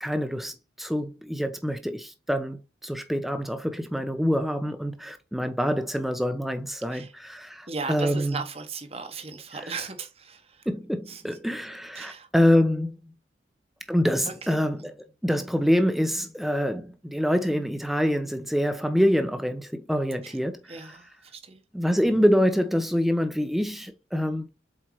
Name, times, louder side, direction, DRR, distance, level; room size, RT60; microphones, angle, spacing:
voice 1, 0.0-8.4 9.5-9.7 10.7-13.0 13.9-14.9 15.2-21.0 21.7-24.5, equal, ahead, 0.8 m, -26 dB
voice 2, 7.7-10.4 11.1-11.2 12.0-12.3 20.2-20.3 20.7-21.1 21.3-21.6, right 4 dB, 35° right, 1.2 m, -36 dB
7.6 x 4.6 x 3.1 m
head